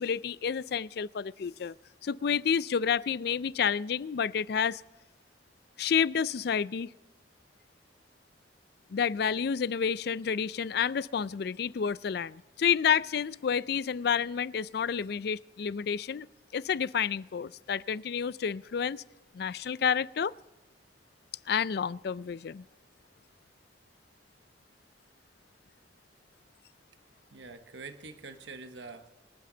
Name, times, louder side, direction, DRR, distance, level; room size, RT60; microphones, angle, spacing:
voice 1, 0.0-1.7 2.0-4.8 5.8-6.9 8.9-16.3 16.5-19.0 19.3-20.3 21.5-22.6, left 7 dB, 60° left, 19 dB, 0.4 m, -29 dB
voice 2, 27.3-29.1, right 3 dB, 80° right, 8 dB, 1.1 m, -45 dB
25.0 x 9.3 x 3.9 m, 1.1 s
head